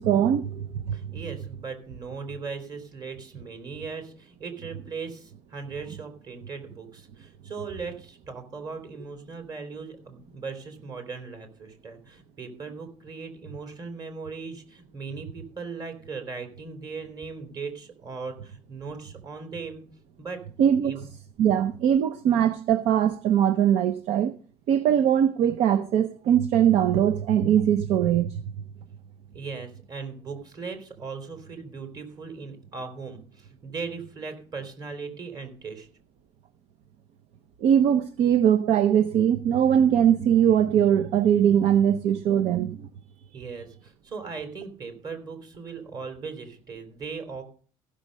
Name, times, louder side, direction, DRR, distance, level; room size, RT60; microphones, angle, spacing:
voice 1, 0.0-0.9 20.6-20.9 21.4-24.3 24.7-28.4 37.6-42.8, right 9 dB, 60° right, 0.7 m, -21 dB
voice 2, 0.9-19.8 20.2-20.4 20.8-21.1 29.3-35.9 43.3-47.4, right 4 dB, 35° right, 3.3 m, -38 dB
15.0 x 6.4 x 6.5 m
cardioid pair, 135°, 12 cm